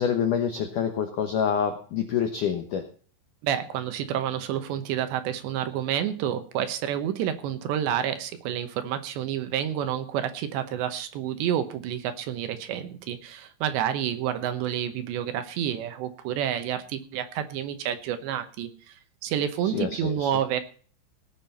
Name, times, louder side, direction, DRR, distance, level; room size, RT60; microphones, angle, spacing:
voice 1, 0.0-2.8 19.6-20.3, left 8 dB, 75° left, 6 dB, 1.8 m, -27 dB
voice 2, 3.4-19.0 19.2-20.6, right 10 dB, 75° right, 9 dB, 3.2 m, -29 dB
17.5 x 7.6 x 5.6 m, 0.43 s
omnidirectional pair, 5.4 m